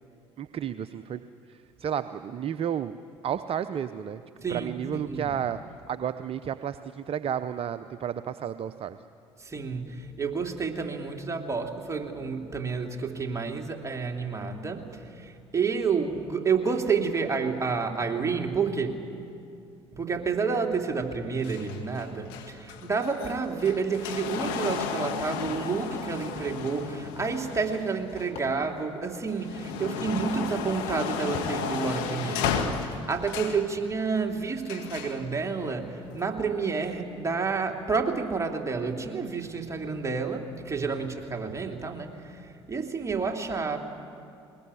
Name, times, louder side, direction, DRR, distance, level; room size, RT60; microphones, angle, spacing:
voice 1, 0.4-1.2 1.5-3.0 3.2-4.2 4.5-5.6 5.9-9.0 29.7-30.1, right 9 dB, 45° right, 12 dB, 0.7 m, -32 dB
voice 2, 4.4-5.3 9.4-14.9 15.1-19.0 19.9-43.8, right 5 dB, 20° right, 2 dB, 3.1 m, -30 dB
sound 1, 21.4-28.6 29.1-33.7 34.7-35.2 36.1-36.2, left 6 dB, 75° left, 1.9 m, -34 dB
sound 2, 28.3-29.8 31.3-32.9, left 3 dB, 55° left, 4.4 m, -47 dB
21.0 x 20.5 x 9.9 m, 2.5 s
hypercardioid pair, 60°, 14 cm